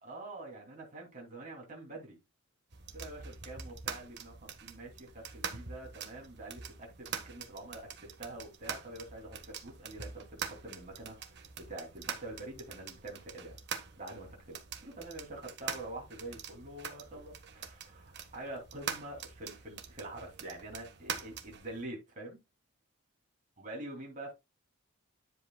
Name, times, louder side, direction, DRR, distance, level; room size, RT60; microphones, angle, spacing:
voice 1, 0.0-2.2 2.9-13.6 14.0-22.4 23.6-24.3, right 2 dB, 35° right, 2.9 m, -46 dB
sound 1, 2.7-21.8, right 6 dB, 55° right, 1.4 m, -44 dB
10.0 x 7.8 x 2.3 m
head